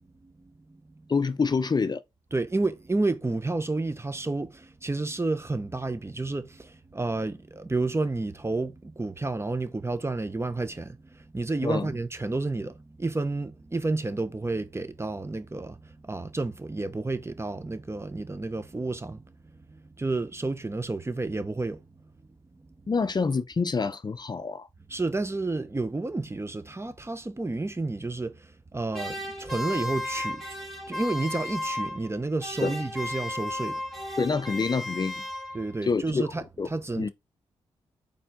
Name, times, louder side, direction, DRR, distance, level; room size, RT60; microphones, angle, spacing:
voice 1, 1.1-2.0 11.6-11.9 22.9-24.7 32.6-32.7 34.2-35.2 35.8-36.2 36.6-36.7 37.0-37.1, left 4 dB, 35° left, 0.5 m, -26 dB
voice 2, 2.3-19.2 19.7-21.8 24.9-30.4 30.9-33.8 35.5-36.4 36.7-37.1, right 2 dB, 20° right, 0.7 m, -30 dB
sound 1, 28.9-32.1 32.4-35.8, left 1 dB, ahead, 2.5 m, -34 dB
4.3 x 3.3 x 3.5 m
supercardioid pair, 45°, 12 cm